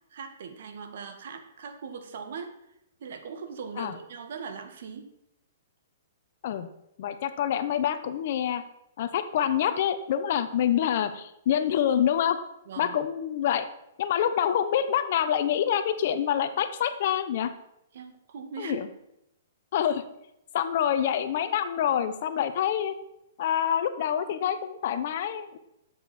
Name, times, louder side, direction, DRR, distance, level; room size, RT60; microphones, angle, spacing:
voice 1, 0.1-2.6 3.0-5.1 12.7-13.0 17.9-18.9, right 5 dB, 65° right, 7 dB, 1.8 m, -40 dB
voice 2, 7.0-8.6 9.0-12.4 12.8-13.7 14.0-17.5 18.6-18.9 19.7-20.0 20.5-22.9 23.4-25.6, left 9 dB, 55° left, 11 dB, 1.1 m, -26 dB
12.5 x 8.3 x 4.4 m, 0.82 s
hypercardioid pair, 150°, 0 cm